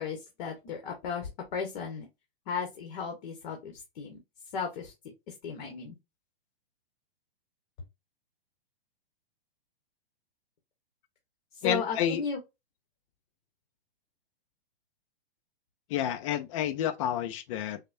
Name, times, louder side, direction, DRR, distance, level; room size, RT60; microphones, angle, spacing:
voice 1, 0.0-2.1 2.4-4.2 4.5-4.9 5.3-5.9 11.5-12.4, left 6 dB, 55° left, 1.4 m, -35 dB
voice 2, 11.6-12.2 15.9-17.8, left 10 dB, 35° left, 0.5 m, -30 dB
6.5 x 2.3 x 2.6 m
hypercardioid pair, 150°, 30 cm